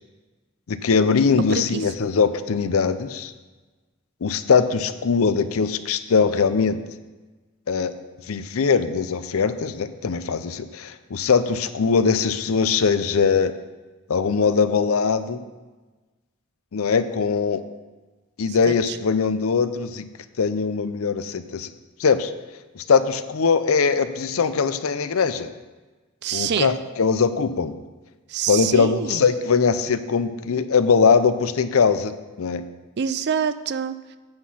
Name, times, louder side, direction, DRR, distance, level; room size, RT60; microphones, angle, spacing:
voice 1, 0.7-3.3 4.2-6.8 7.7-7.9 8.3-13.5 14.1-15.4 16.7-17.6 18.4-20.0 20.4-21.7 22.0-22.3 22.8-25.5 26.3-27.7 28.5-32.6, left 5 dB, 75° left, 12 dB, 0.5 m, -21 dB
voice 2, 1.5-1.8 18.5-19.0 26.2-26.7 28.3-29.3 33.0-34.2, right 7 dB, 50° right, 13 dB, 0.4 m, -26 dB
8.8 x 5.9 x 5.6 m, 1.3 s
head